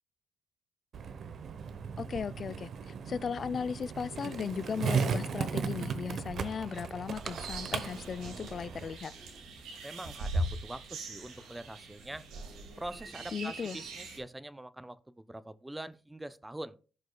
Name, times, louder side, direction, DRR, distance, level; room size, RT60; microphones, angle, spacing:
Skateboard, 0.9-8.9, right 6 dB, 60° right, 0.9 m, -36 dB
voice 1, 2.0-9.1 13.3-13.8, left 6 dB, 45° left, 0.4 m, -37 dB
sound 1, 7.2-14.2, right 1 dB, 85° right, 2.1 m, -40 dB
voice 2, 9.8-12.2 12.8-16.8, right 1 dB, 10° right, 0.5 m, -44 dB
15.0 x 5.1 x 2.3 m
cardioid pair, 90°, 0 cm